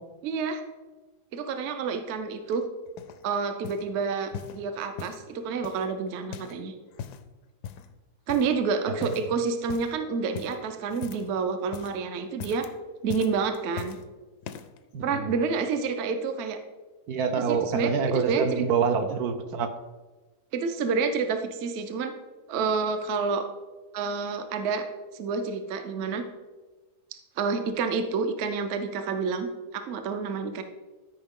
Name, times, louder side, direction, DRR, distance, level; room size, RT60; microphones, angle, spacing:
voice 1, 0.2-0.6 1.3-2.6 3.2-6.7 8.3-12.7 13.0-14.0 15.0-16.6 17.4-18.7 20.5-22.1 22.5-23.4 23.9-24.9 25.1-26.2 27.4-30.6, right 5 dB, 55° right, 7 dB, 0.8 m, -29 dB
sound 1, 2.5-3.2 3.6-3.9 4.3-5.3 5.6-6.6 6.9-7.3 7.6-7.9 8.3-8.7 9.0-9.3 9.6-9.9 10.3-11.4 11.6-12.0 12.3-12.7 13.1-14.0 14.4-14.8 15.5-15.6, left 8 dB, 80° left, 1.2 m, -41 dB
voice 2, 14.9-15.3 17.1-19.7, right 6 dB, 70° right, 7 dB, 1.2 m, -26 dB
12.5 x 5.2 x 3.7 m, 1.2 s
omnidirectional pair, 1.7 m